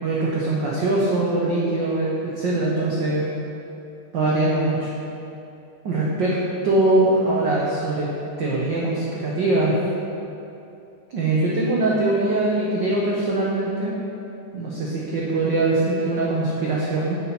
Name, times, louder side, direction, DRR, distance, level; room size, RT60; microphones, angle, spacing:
voice 1, 0.0-3.3 4.1-4.9 5.8-6.3 6.6-8.1 8.4-9.8 11.1-13.9 14.5-17.2, right 2 dB, 85° right, -5 dB, 1.0 m, -22 dB
8.4 x 5.8 x 5.7 m, 2.8 s
omnidirectional pair, 3.5 m